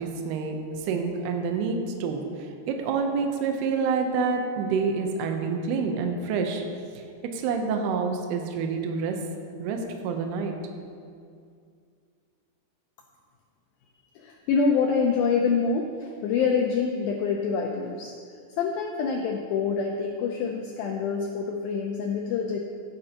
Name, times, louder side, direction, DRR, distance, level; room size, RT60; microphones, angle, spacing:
voice 1, 0.0-6.6 7.0-7.1 7.3-9.2 9.6-10.6, right 5 dB, 75° right, 4 dB, 2.7 m, -28 dB
voice 2, 14.2-18.1 18.6-22.6, left 5 dB, 85° left, 1 dB, 2.0 m, -26 dB
15.5 x 9.8 x 2.9 m, 2.3 s
omnidirectional pair, 5.0 m